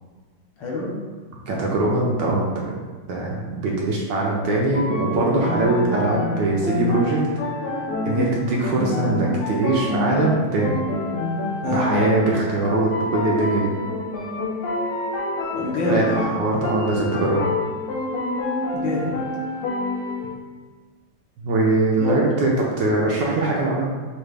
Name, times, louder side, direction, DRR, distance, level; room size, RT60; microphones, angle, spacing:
voice 1, 0.6-0.9 8.0-8.3 11.6-11.9 15.5-16.3 18.7-19.1 22.0-22.2, left 2 dB, 65° left, -4 dB, 1.4 m, -25 dB
voice 2, 1.5-2.8 3.1-7.2 8.1-10.8 11.6-13.7 15.8-17.5 21.4-23.9, right 2 dB, 70° right, -2 dB, 1.2 m, -22 dB
sound 1, 4.7-20.3, left 2 dB, 85° left, 1.7 m, -27 dB
6.0 x 2.3 x 3.3 m, 1.4 s
omnidirectional pair, 2.3 m